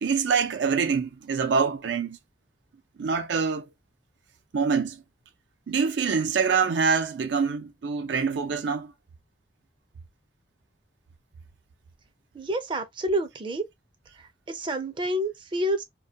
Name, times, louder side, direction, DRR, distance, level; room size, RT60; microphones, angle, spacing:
voice 1, 0.0-2.2 3.0-3.7 4.5-5.0 5.7-8.9, right 5 dB, 85° right, 0.4 m, -25 dB
voice 2, 12.3-13.7 14.2-15.8, right 1 dB, 30° right, 0.4 m, -29 dB
2.2 x 2.2 x 2.7 m
head